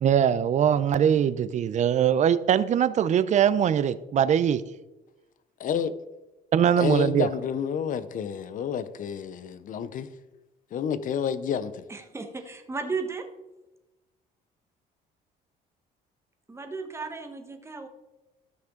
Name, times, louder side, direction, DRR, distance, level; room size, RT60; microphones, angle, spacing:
voice 1, 0.0-4.6 6.5-7.3, right 9 dB, 45° right, 15 dB, 0.5 m, -22 dB
voice 2, 5.6-5.9 6.8-10.1 10.7-11.8, left 8 dB, 50° left, 14 dB, 0.7 m, -29 dB
voice 3, 11.9-13.3 16.5-17.9, right 4 dB, 15° right, 5 dB, 1.2 m, -34 dB
13.0 x 5.9 x 3.8 m, 1.0 s
cardioid pair, 110°, 17 cm